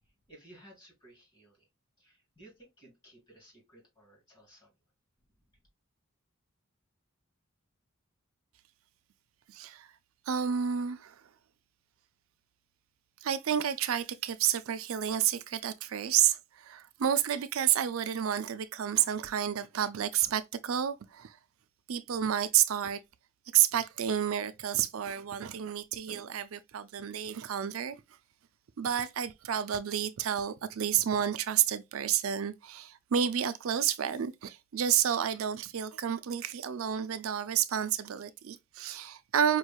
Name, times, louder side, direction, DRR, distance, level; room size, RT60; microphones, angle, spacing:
voice 1, 0.3-1.7 2.0-4.7, right 1 dB, 20° left, 2.8 m, -57 dB
voice 2, 9.5-9.9 10.3-11.2 13.2-21.4 21.9-23.0 23.5-28.0 28.8-39.6, right 9 dB, 80° right, 0.4 m, -30 dB
5.2 x 3.2 x 2.3 m
head